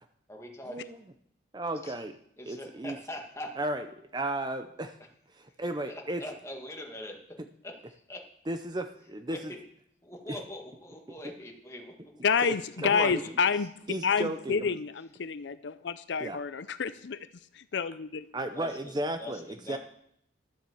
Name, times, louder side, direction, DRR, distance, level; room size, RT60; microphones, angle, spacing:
voice 1, 0.3-0.7 1.8-2.0 2.4-3.5 5.9-7.2 7.6-8.2 9.3-9.6 10.0-12.2 13.0-13.3 18.5-18.9 19.2-19.8, left 1 dB, 15° left, 1 dB, 1.7 m, -42 dB
voice 2, 1.5-2.1 2.5-3.0 3.6-3.9 4.1-5.0 5.3-6.2 8.5-9.5 10.3-10.4 12.8-13.2 13.9-14.8 16.2-16.4 18.3-19.8, right 1 dB, 20° right, 8 dB, 0.5 m, -34 dB
voice 3, 12.2-13.7 14.0-17.3 17.5-18.2, left 6 dB, 70° left, 13 dB, 0.5 m, -29 dB
12.0 x 7.4 x 7.0 m, 0.70 s
head